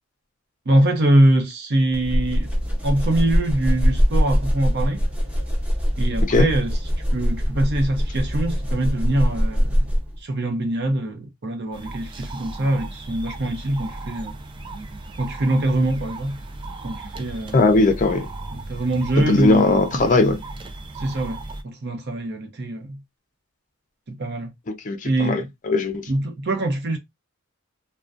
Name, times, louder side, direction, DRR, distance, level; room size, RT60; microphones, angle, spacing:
voice 1, 0.7-2.5 2.8-5.0 6.0-6.8 7.1-9.9 10.2-14.3 15.2-16.4 16.8-17.6 18.5-19.8 20.9-21.4 21.6-23.0 24.1-24.5 25.0-25.5 26.1-27.0, right 1 dB, 55° right, 0.7 m, -23 dB
sound 1, 1.9-10.2, equal, 5° right, 0.7 m, -22 dB
sound 2, 11.7-21.6, right 2 dB, 25° right, 0.4 m, -36 dB
voice 2, 17.5-18.3 19.3-20.4 24.7-26.1, left 3 dB, 40° left, 0.5 m, -19 dB
2.3 x 2.2 x 2.4 m
head